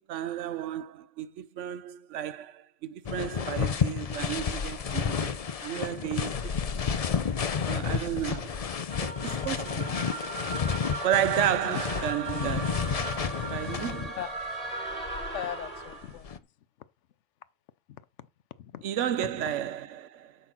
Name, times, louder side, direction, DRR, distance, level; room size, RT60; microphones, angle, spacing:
voice 1, 0.1-5.3 5.6-6.5 6.9-7.0 7.7-8.4 9.0-10.1 11.0-13.1 13.5-14.2 18.8-20.4, right 10 dB, 70° right, 1.0 m, -32 dB
sound 1, 3.1-14.3 14.9-16.4, left 6 dB, 45° left, 0.5 m, -31 dB
sound 2, 8.9-16.2, right 3 dB, 30° right, 1.7 m, -38 dB
voice 2, 15.3-16.4 17.9-18.3 18.6-18.8, left 11 dB, 70° left, 0.9 m, -38 dB
8.4 x 6.4 x 5.9 m
omnidirectional pair, 1.3 m